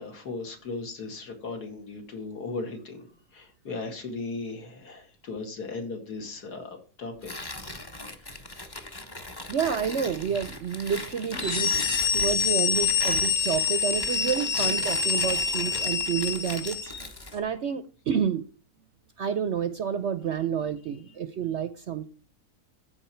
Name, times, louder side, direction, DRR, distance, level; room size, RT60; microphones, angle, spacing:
voice 1, 0.0-3.1 3.3-7.3 8.2-8.3, left 3 dB, 75° left, 4 dB, 2.6 m, -37 dB
Tearing, 7.2-17.4, left 1 dB, 20° left, 0.9 m, -38 dB
voice 2, 9.5-16.9 17.3-18.4 19.2-22.1, right 7 dB, 60° right, 12 dB, 0.7 m, -29 dB
sound 1, 11.3-17.0, left 6 dB, 45° left, 1.7 m, -26 dB
14.0 x 4.9 x 4.4 m, 0.39 s
omnidirectional pair, 1.7 m